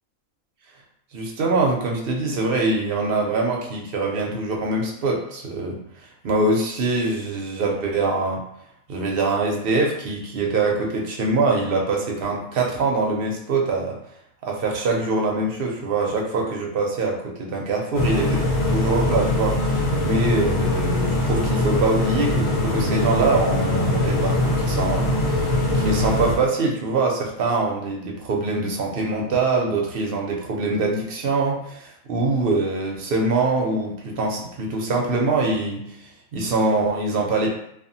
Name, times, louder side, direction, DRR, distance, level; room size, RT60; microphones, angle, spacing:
voice 1, 1.1-5.8 6.2-8.4 8.9-14.0 14.4-18.4 18.7-25.5 25.7-37.5, right 3 dB, 60° right, 0 dB, 0.6 m, -24 dB
sound 1, 17.9-26.4, left 1 dB, 90° left, 1.1 m, -22 dB
2.7 x 2.3 x 2.5 m, 0.73 s
omnidirectional pair, 1.4 m